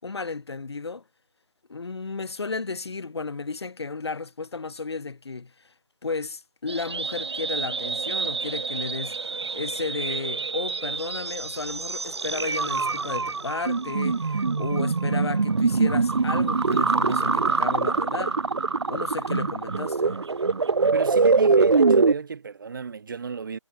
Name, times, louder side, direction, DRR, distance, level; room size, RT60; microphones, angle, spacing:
voice 1, 0.0-1.0 1.7-5.5 6.0-9.2 9.5-18.4 18.9-20.2, left 4 dB, 55° left, 6.8 m, -33 dB
sound 1, 6.7-22.1, right 4 dB, 60° right, 1.3 m, -24 dB
voice 2, 20.9-23.6, right 5 dB, 40° right, 7.8 m, -33 dB
figure-of-eight pair, 160°, 16 cm